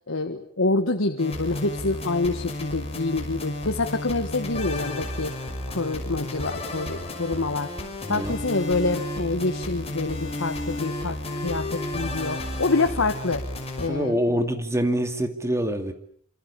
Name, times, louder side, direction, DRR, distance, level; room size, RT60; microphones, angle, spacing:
voice 1, 0.1-5.3 5.7-7.7 8.1-13.4 13.8-14.2, left 3 dB, 90° left, 6 dB, 1.7 m, -26 dB
sound 1, 1.2-13.9, left 1 dB, 30° left, 5.9 m, -32 dB
voice 2, 8.0-8.3 13.9-15.9, equal, 15° right, 7 dB, 2.6 m, -25 dB
26.5 x 26.5 x 7.2 m, 0.64 s
head